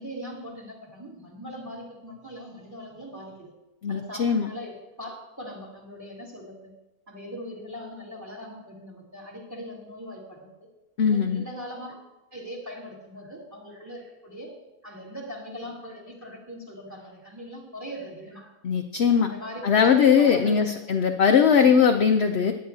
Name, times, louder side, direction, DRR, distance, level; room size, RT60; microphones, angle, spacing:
voice 1, 0.0-3.5 3.9-6.7 7.1-10.5 11.1-12.0 12.3-14.5 14.8-18.5 19.2-20.6 21.6-21.8, equal, 10° right, -3 dB, 2.9 m, -40 dB
voice 2, 3.8-4.5 11.0-11.4 18.6-19.3 19.6-22.5, left 7 dB, 55° left, 5 dB, 0.8 m, -20 dB
17.0 x 10.5 x 2.8 m, 1.0 s
omnidirectional pair, 1.6 m